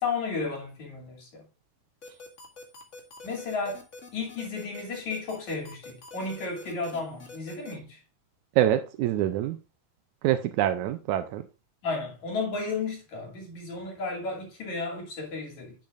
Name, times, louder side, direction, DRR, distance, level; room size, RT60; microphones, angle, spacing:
voice 1, 0.0-1.4 3.2-3.8 4.1-8.0 11.8-15.7, left 4 dB, 55° left, 3.8 m, -33 dB
sound 1, 2.0-7.7, left 3 dB, 30° left, 1.5 m, -45 dB
voice 2, 8.6-9.6 10.2-11.4, right 12 dB, 80° right, 1.8 m, -25 dB
10.5 x 8.4 x 2.5 m
omnidirectional pair, 4.1 m